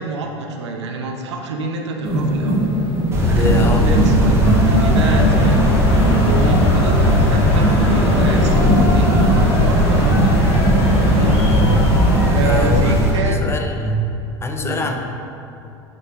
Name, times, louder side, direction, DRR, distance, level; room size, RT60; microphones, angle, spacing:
voice 1, 0.0-2.7 3.3-5.7 5.9-10.4 11.0-11.3 12.2-13.4 14.6-14.9, right 3 dB, 80° right, 2 dB, 0.4 m, -26 dB
sound 1, 2.0-12.5, right 1 dB, 45° right, 1.2 m, -21 dB
sound 2, 3.1-13.1, equal, 20° right, 0.8 m, -17 dB
voice 2, 3.3-4.0 4.4-4.7 11.5-11.8 12.4-14.1 14.4-15.0, equal, 20° left, 3 dB, 0.3 m, -23 dB
Crowd, 4.3-12.5, left 2 dB, 75° left, 0.7 m, -27 dB
6.1 x 2.4 x 2.2 m, 2.7 s
hypercardioid pair, 80°, 14 cm